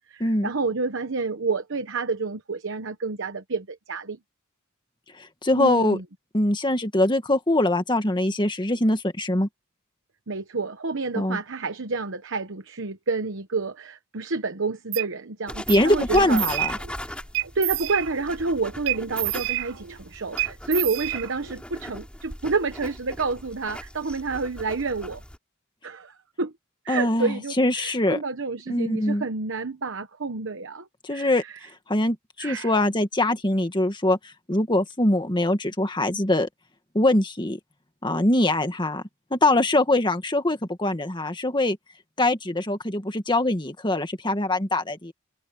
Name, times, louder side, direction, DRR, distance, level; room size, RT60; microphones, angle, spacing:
voice 1, 0.0-4.2 5.6-6.0 10.3-16.5 17.5-25.2 25.8-26.5 26.8-31.6 32.4-32.7, right 3 dB, 60° right, 1.1 m, -29 dB
voice 2, 5.2-6.0 6.3-9.5 11.1-11.4 15.7-16.7 26.9-28.2 28.7-29.2 31.0-31.4 31.9-34.2 34.5-36.5 36.9-37.6 38.0-39.0 39.3-41.8 42.2-45.1, left 1 dB, 20° left, 1.9 m, -23 dB
sound 1, 14.9-15.1 15.7-15.9 16.2-17.0 17.3-18.4 18.9-20.0 20.4-21.6, right 17 dB, 80° right, 4.0 m, -29 dB
sound 2, 15.5-25.4, equal, 5° left, 3.5 m, -39 dB
head